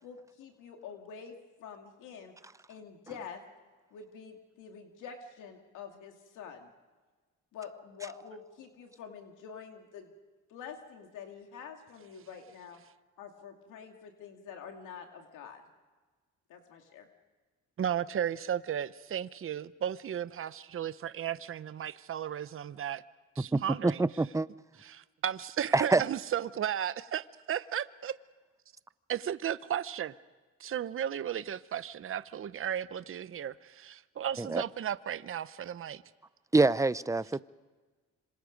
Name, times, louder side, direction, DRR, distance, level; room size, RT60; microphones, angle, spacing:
voice 1, 0.0-2.3 2.7-3.4 3.9-6.7 7.5-10.1 10.5-12.8 13.2-15.6 16.5-17.1, left 7 dB, 90° left, 3 dB, 2.5 m, -47 dB
voice 2, 17.8-23.0 23.4-24.0 24.8-28.2 29.1-30.1 30.6-36.0, right 9 dB, 45° right, 15 dB, 0.8 m, -34 dB
voice 3, 23.5-24.5 25.7-26.0 34.4-34.6 36.5-37.4, right 3 dB, 10° right, 17 dB, 0.6 m, -26 dB
26.5 x 26.5 x 5.3 m, 1.3 s
cardioid pair, 90°, 30 cm